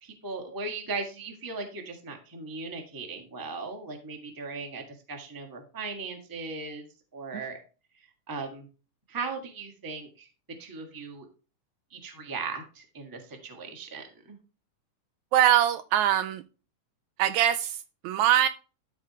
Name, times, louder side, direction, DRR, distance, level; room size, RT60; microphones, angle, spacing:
voice 1, 0.0-6.8 7.1-7.6 8.3-8.7 9.1-11.2 11.9-14.4, right 4 dB, 10° right, 0.9 m, -38 dB
voice 2, 15.3-16.4 17.2-17.8 18.0-18.5, right 11 dB, 80° right, 1.8 m, -22 dB
13.0 x 4.8 x 3.1 m
omnidirectional pair, 3.6 m